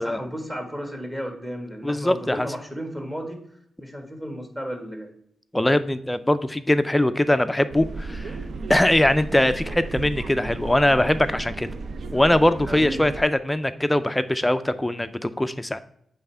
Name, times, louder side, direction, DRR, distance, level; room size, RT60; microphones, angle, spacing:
voice 1, 0.0-3.4 3.8-5.1 12.7-13.1, equal, 10° right, 2 dB, 1.4 m, -33 dB
voice 2, 1.8-2.5 5.5-8.4 8.7-11.7 12.1-15.8, left 1 dB, 10° left, 11 dB, 0.4 m, -21 dB
sound 1, 7.7-13.2, right 3 dB, 60° right, 0.5 m, -34 dB
8.0 x 3.4 x 4.4 m, 0.71 s
wide cardioid pair, 115°, 0 cm